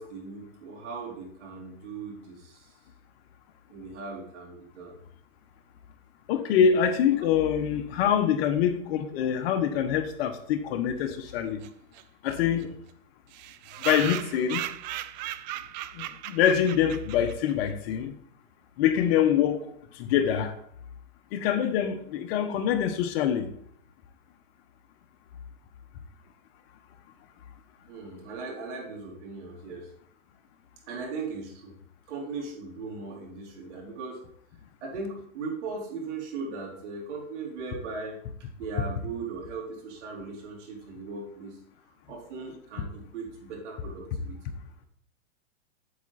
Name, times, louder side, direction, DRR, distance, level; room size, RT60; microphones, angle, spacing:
voice 1, 0.0-2.7 3.7-5.0 7.2-7.3 12.5-12.7 27.9-29.9 30.9-31.8 32.1-34.2 34.8-38.2 38.6-41.6 42.1-44.4, right 4 dB, 65° right, 4.2 m, -38 dB
voice 2, 6.3-11.6 12.2-12.7 13.8-14.6 15.9-18.1 18.8-20.5 21.3-23.5, left 8 dB, 50° left, 1.2 m, -25 dB
sound 1, 11.6-11.7 11.9-12.0 12.3-12.4 12.6-12.7 13.3-17.5, right 14 dB, 35° right, 0.4 m, -36 dB
8.3 x 7.8 x 4.2 m
supercardioid pair, 145°, 38 cm